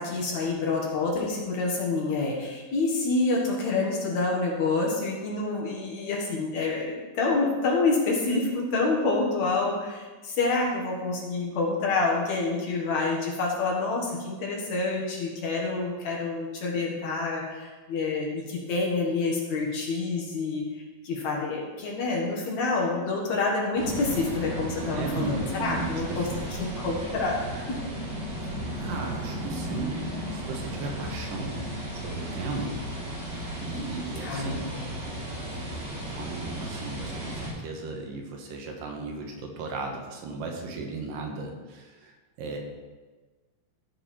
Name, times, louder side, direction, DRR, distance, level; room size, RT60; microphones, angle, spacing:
voice 1, 0.0-27.8 34.2-35.0, left 3 dB, 60° left, -2 dB, 2.7 m, -28 dB
sound 1, 23.8-37.5, right 1 dB, 50° right, 4.0 m, -35 dB
voice 2, 24.9-26.5 28.4-31.6 31.9-32.8 33.6-34.7 35.4-42.6, right 3 dB, 80° right, 2 dB, 2.8 m, -36 dB
15.0 x 5.4 x 4.3 m, 1.3 s
omnidirectional pair, 3.9 m